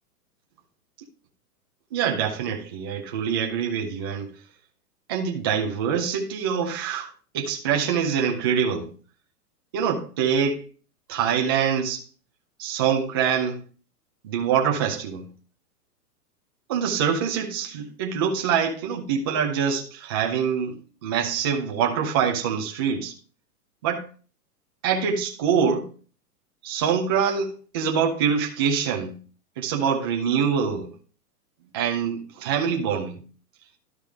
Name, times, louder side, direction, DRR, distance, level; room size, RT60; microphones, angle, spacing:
voice 1, 1.9-4.3 5.1-7.1 7.3-8.9 9.7-10.6 11.1-12.0 12.6-13.6 14.2-15.3 16.7-23.1 23.8-24.1 24.8-25.9 26.6-29.2 29.6-30.9 31.7-33.2, right 7 dB, 15° right, 0.5 m, -25 dB
12.0 x 4.9 x 3.5 m
hypercardioid pair, 165°, 47 cm